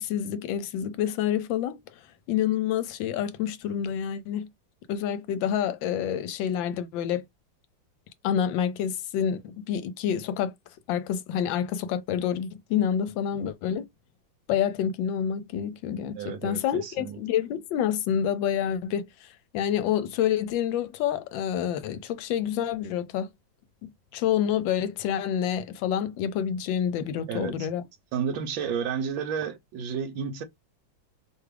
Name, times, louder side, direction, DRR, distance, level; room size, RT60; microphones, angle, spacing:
voice 1, 0.0-2.0 2.3-4.5 4.9-7.2 8.2-10.5 10.9-13.8 14.5-23.3 23.8-27.8, left 9 dB, 75° left, 1.3 m, -28 dB
voice 2, 16.1-17.2 27.3-27.7 28.1-30.4, right 7 dB, 80° right, 1.5 m, -31 dB
4.8 x 2.4 x 3.2 m
omnidirectional pair, 2.1 m